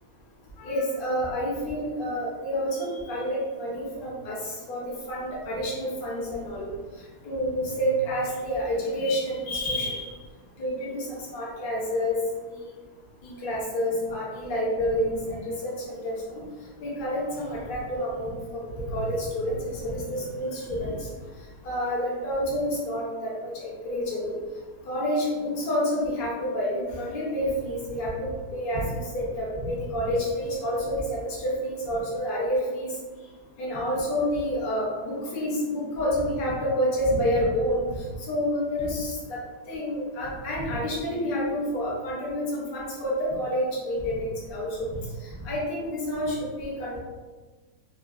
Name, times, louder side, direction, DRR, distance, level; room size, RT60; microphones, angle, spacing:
voice 1, 0.6-4.4 4.7-4.8 5.1-6.6 7.2-10.0 10.6-12.2 12.6-12.7 13.2-16.4 16.8-20.9 21.6-24.4 24.9-32.9 33.6-37.8 38.3-39.4 39.7-44.9 45.4-47.0, equal, 55° left, -5 dB, 0.5 m, -28 dB
3.1 x 2.4 x 2.3 m, 1.3 s
omnidirectional pair, 2.0 m